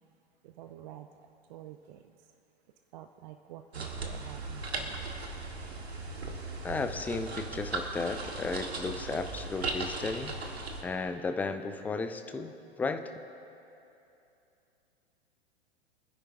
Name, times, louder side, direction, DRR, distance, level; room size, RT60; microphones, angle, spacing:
voice 1, 0.4-2.4 2.9-5.1, right 11 dB, 45° right, 7 dB, 0.7 m, -49 dB
sound 1, 3.7-10.8, right 3 dB, 75° right, 1.6 m, -37 dB
voice 2, 6.6-10.5 10.8-13.1, left 4 dB, 5° left, 8 dB, 0.4 m, -34 dB
26.0 x 10.0 x 2.7 m, 2.8 s
figure-of-eight pair, 100°, 32 cm